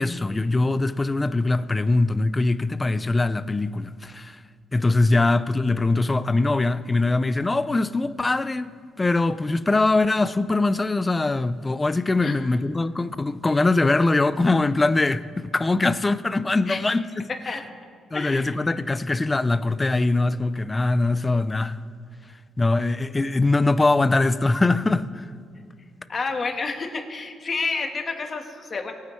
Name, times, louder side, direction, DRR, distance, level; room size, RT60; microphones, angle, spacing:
voice 1, 0.0-4.4 4.7-17.3 18.1-21.8 22.6-25.3, left 2 dB, 20° left, 0.4 m, -22 dB
voice 2, 18.1-18.5 26.1-28.9, left 4 dB, 40° left, 1.3 m, -29 dB
19.0 x 9.3 x 3.2 m
cardioid pair, 90°, 0 cm